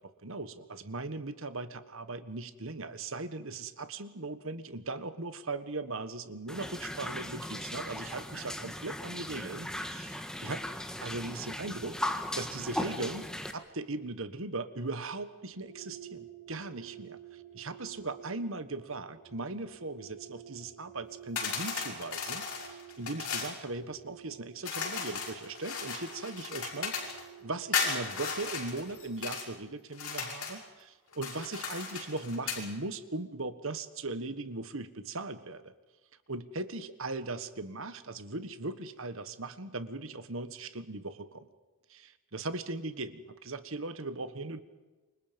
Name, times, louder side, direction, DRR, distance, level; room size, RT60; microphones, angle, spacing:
voice 1, 0.0-10.6 11.0-27.0 27.4-35.7 36.3-41.5 41.9-44.6, right 2 dB, 65° right, 12 dB, 1.5 m, -39 dB
sound 1, 6.5-13.5, left 1 dB, 5° left, 1.5 m, -38 dB
sound 2, 15.5-29.4, right 10 dB, 40° left, 5.4 m, -52 dB
sound 3, 21.4-23.6 24.6-27.2 27.7-29.5 29.9-30.6 31.1-32.7, left 5 dB, 80° left, 6.7 m, -36 dB
28.5 x 25.0 x 5.3 m, 1.2 s
head